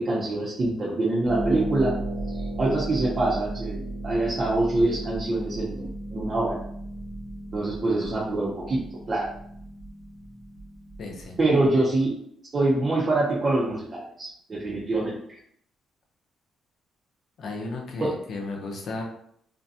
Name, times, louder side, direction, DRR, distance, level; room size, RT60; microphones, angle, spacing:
voice 1, 0.0-2.0 2.6-6.6 7.5-8.8 9.1-9.3 11.4-12.1 12.5-15.2 18.0-18.1, right 2 dB, 40° right, -6 dB, 0.6 m, -25 dB
Harp, 1.2-11.8, right 1 dB, 75° right, 1.0 m, -35 dB
voice 2, 11.0-11.4 17.4-19.0, left 3 dB, 60° left, 1 dB, 0.6 m, -34 dB
2.6 x 2.2 x 2.6 m, 0.68 s
cardioid pair, 90°, 0 cm